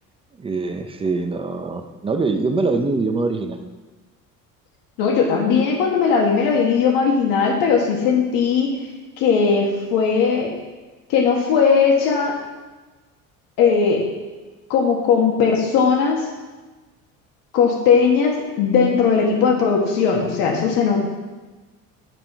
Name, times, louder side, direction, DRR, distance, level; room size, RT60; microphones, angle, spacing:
voice 1, 0.4-3.7, right 3 dB, 15° right, 6 dB, 0.6 m, -23 dB
voice 2, 5.0-8.7 9.2-10.5 11.1-12.3 13.6-14.0 14.7-16.2 17.5-21.0, left 6 dB, 75° left, 0 dB, 1.5 m, -18 dB
11.0 x 5.8 x 4.7 m, 1.2 s
cardioid pair, 150°, 34 cm